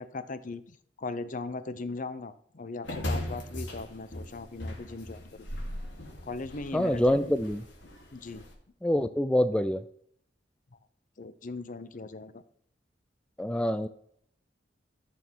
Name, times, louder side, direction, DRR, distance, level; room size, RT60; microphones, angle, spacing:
voice 1, 0.0-5.4 6.2-7.2 8.1-8.4 11.2-12.4, left 3 dB, 45° left, 13 dB, 0.6 m, -39 dB
sound 1, 2.8-8.5, left 1 dB, 90° left, 2.8 m, -38 dB
voice 2, 6.7-7.6 8.8-9.8 13.4-13.9, equal, 5° left, 10 dB, 0.3 m, -26 dB
14.0 x 6.4 x 4.5 m, 0.67 s
head